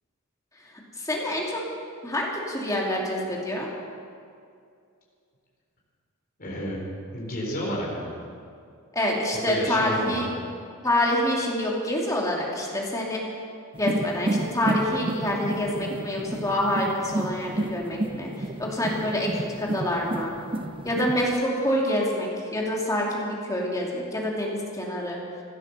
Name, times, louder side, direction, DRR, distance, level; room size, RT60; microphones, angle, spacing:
voice 1, 1.0-1.6 2.0-3.7 8.9-10.3 10.8-13.2 13.8-20.3 20.8-25.2, left 1 dB, 15° left, -2 dB, 2.6 m, -27 dB
voice 2, 6.4-6.8 7.1-8.1 9.5-10.2, equal, 40° left, -4 dB, 3.9 m, -30 dB
sound 1, 13.7-21.4, right 1 dB, 25° right, 0.5 m, -31 dB
16.0 x 12.0 x 6.8 m, 2.3 s
head